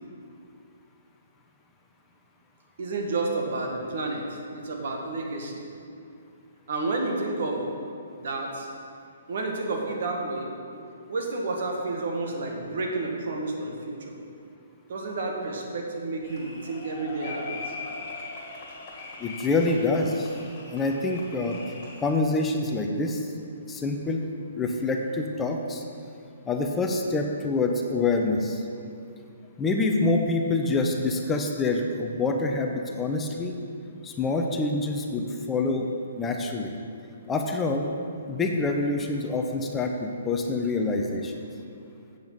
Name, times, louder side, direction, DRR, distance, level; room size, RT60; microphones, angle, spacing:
voice 1, 2.8-5.6 6.7-7.7 8.1-8.7 9.3-10.5 11.1-14.1 14.9-17.8, right 2 dB, 60° right, 1 dB, 1.6 m, -30 dB
sound 1, 16.2-22.1, left 3 dB, 40° left, 1.9 m, -40 dB
voice 2, 19.2-20.4 20.7-21.6 22.0-23.3 23.7-24.3 24.6-25.8 26.5-28.6 29.6-33.6 34.0-35.9 36.2-36.7 37.3-37.9 38.3-41.3, left 3 dB, 15° left, 3 dB, 0.7 m, -26 dB
7.9 x 7.0 x 5.6 m, 2.5 s
hypercardioid pair, 135°, 0 cm